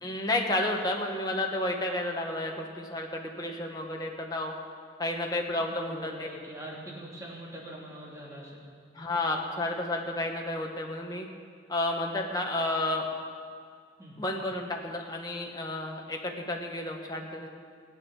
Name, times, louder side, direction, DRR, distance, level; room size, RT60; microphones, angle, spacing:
voice 1, 0.0-4.5 5.0-6.3 8.9-11.3 11.7-13.1 14.2-17.5, left 1 dB, 20° left, 1 dB, 1.5 m, -31 dB
voice 2, 5.6-8.7 14.0-14.2, equal, 20° right, -4 dB, 2.9 m, -43 dB
16.5 x 9.4 x 7.2 m, 2.1 s
head